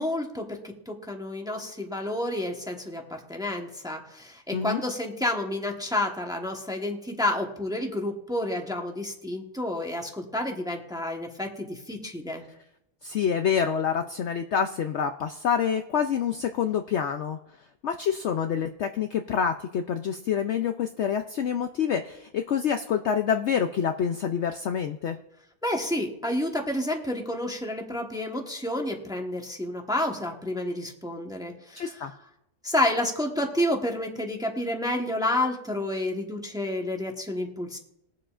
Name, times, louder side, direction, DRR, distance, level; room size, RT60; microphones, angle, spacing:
voice 1, 0.0-12.4 25.6-31.9 32.6-37.8, left 1 dB, 5° right, 1 dB, 1.0 m, -30 dB
voice 2, 13.0-17.4 17.8-25.2 31.7-32.1, left 7 dB, 65° left, 7 dB, 0.7 m, -27 dB
21.5 x 7.6 x 2.5 m, 0.83 s
omnidirectional pair, 1.6 m